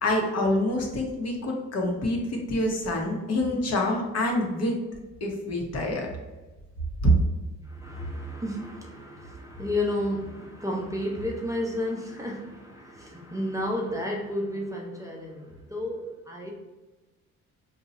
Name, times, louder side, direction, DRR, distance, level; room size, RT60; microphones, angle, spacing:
voice 1, 0.0-4.8 5.2-6.1 7.0-7.1, left 1 dB, 55° left, 0 dB, 0.9 m, -26 dB
voice 2, 7.7-16.5, left 1 dB, 10° right, -1 dB, 0.5 m, -32 dB
2.7 x 2.3 x 4.0 m, 1.1 s
cardioid pair, 90°, 30 cm